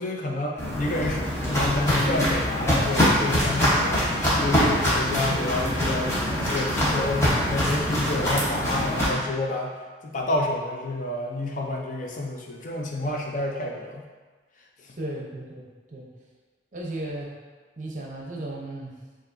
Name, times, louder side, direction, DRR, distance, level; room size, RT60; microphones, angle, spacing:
voice 1, 0.0-6.1 6.4-9.7 10.0-14.0 14.8-15.0, left 1 dB, 45° left, 0 dB, 0.5 m, -29 dB
Walk footsteps, 0.6-9.1, equal, 15° left, 0.9 m, -24 dB
voice 2, 15.0-16.1 16.7-17.3 17.8-18.9, right 1 dB, 40° right, -2 dB, 0.7 m, -35 dB
7.0 x 2.5 x 2.6 m, 1.4 s
head